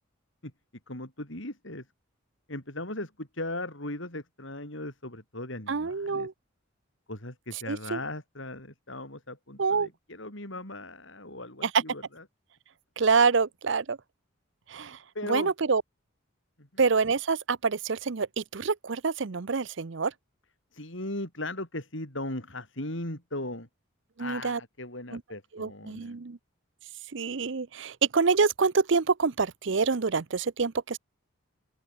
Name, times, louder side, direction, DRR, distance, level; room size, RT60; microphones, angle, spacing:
voice 1, 0.9-1.8 2.5-6.3 7.1-12.2 15.1-15.5 16.6-16.8 20.7-23.7 24.2-26.1, left 1 dB, 65° left, 5.8 m, -38 dB
voice 2, 5.7-6.3 7.7-8.0 9.6-9.9 11.6-11.8 13.0-14.0 14.7-15.8 16.8-20.1 24.2-24.6 25.1-25.2 25.5-26.4 27.1-31.0, right 5 dB, 60° right, 0.7 m, -26 dB
open air
head